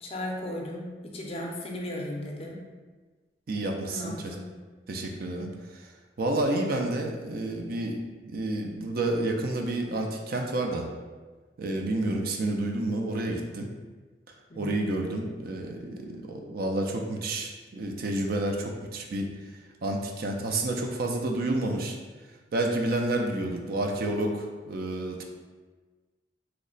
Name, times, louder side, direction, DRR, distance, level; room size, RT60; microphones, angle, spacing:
voice 1, 0.0-2.6 3.9-4.4 14.5-14.8, left 1 dB, 35° left, -1 dB, 0.5 m, -36 dB
voice 2, 3.5-4.4 4.9-5.5 6.2-10.9 11.6-13.7 14.6-19.3 19.8-22.0 22.5-25.2, right 2 dB, 55° right, 2 dB, 0.4 m, -29 dB
3.1 x 2.0 x 3.8 m, 1.3 s
head